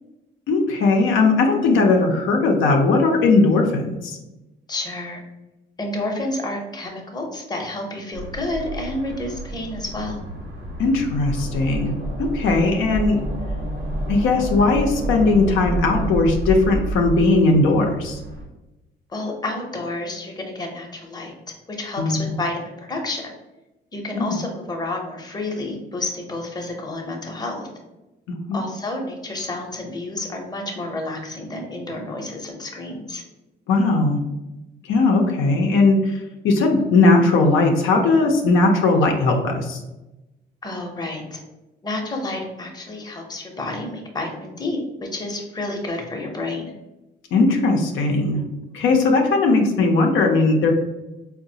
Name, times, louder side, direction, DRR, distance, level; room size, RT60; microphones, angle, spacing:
voice 1, 0.5-4.2 10.8-11.9 12.2-13.2 14.1-18.2 22.0-22.4 24.1-24.4 28.5-28.6 33.7-34.2 34.9-36.2 36.4-39.8 47.3-48.4 48.7-50.7, left 3 dB, 80° left, 1 dB, 0.5 m, -18 dB
voice 2, 4.7-5.2 5.8-10.2 19.1-21.3 21.7-23.3 23.9-27.7 28.5-33.2 40.6-41.4 41.8-46.7, left 2 dB, 20° left, 1 dB, 0.7 m, -30 dB
sound 1, 8.1-18.5, right 1 dB, 85° right, 0.8 m, -29 dB
3.9 x 2.1 x 2.6 m, 1.0 s
cardioid pair, 90°, 20 cm